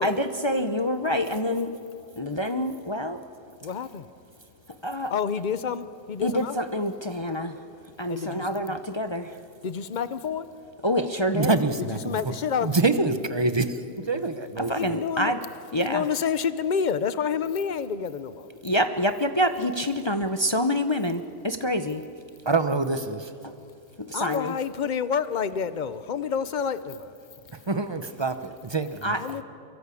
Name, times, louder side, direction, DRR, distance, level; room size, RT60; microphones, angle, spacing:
voice 1, 0.0-1.8 2.2-3.2 4.8-5.1 6.2-7.6 8.0-9.3 10.8-11.6 14.6-15.4 15.7-16.1 18.6-22.0 23.4-23.5 24.0-24.5 29.0-29.4, equal, 30° left, 8 dB, 0.5 m, -26 dB
voice 2, 3.6-4.0 5.1-6.6 8.1-8.8 9.6-10.5 11.9-12.8 14.8-15.3 15.7-18.5 24.1-27.1 29.2-29.4, left 7 dB, 80° left, 14 dB, 0.4 m, -29 dB
voice 3, 11.3-12.2 12.6-13.8 14.1-15.0 22.5-23.3 27.7-29.2, right 3 dB, 25° right, 10 dB, 0.6 m, -26 dB
25.0 x 23.0 x 8.4 m, 2.5 s
omnidirectional pair, 1.8 m